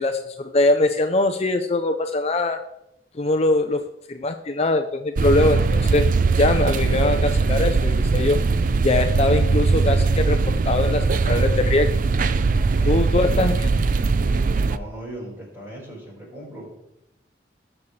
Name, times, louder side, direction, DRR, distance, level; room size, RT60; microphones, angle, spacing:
voice 1, 0.0-2.6 3.1-3.8 4.1-8.4 8.8-11.9 12.9-13.5, left 2 dB, 35° left, 7 dB, 0.5 m, -22 dB
sound 1, 5.2-14.8, right 4 dB, 45° right, 0.4 m, -20 dB
voice 2, 12.4-13.6 14.6-16.9, right 1 dB, 15° right, -4 dB, 4.8 m, -39 dB
19.5 x 7.2 x 3.2 m, 0.84 s
head